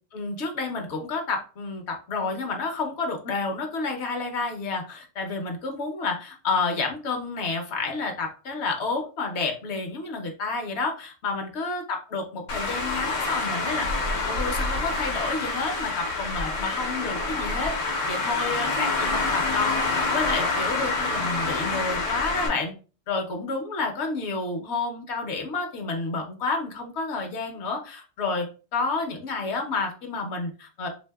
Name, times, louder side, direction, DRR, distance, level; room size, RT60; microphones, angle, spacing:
voice 1, 0.1-13.9 14.3-19.7 20.1-22.7 23.1-28.5 28.7-30.9, left 3 dB, 65° left, 3 dB, 0.9 m, -30 dB
Traffic noise roadway noise, 12.5-22.5, left 3 dB, 85° left, 1.1 m, -27 dB
3.3 x 2.6 x 2.2 m, 0.35 s
omnidirectional pair, 1.3 m